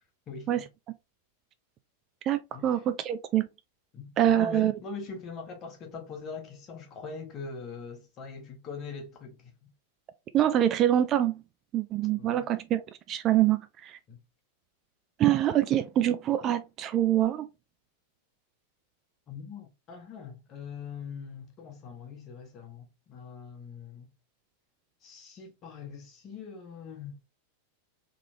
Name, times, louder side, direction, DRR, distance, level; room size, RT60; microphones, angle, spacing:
voice 1, 0.3-0.7 2.5-2.7 3.9-9.7 12.2-12.5 14.1-14.2 19.3-24.1 25.0-27.2, left 5 dB, 30° left, 1.3 m, -42 dB
voice 2, 2.2-3.5 4.2-4.7 10.3-11.4 11.7-12.8 13.1-14.0 15.2-17.5, right 11 dB, 30° right, 0.4 m, -25 dB
3.6 x 3.2 x 2.8 m
figure-of-eight pair, 90°, 0 cm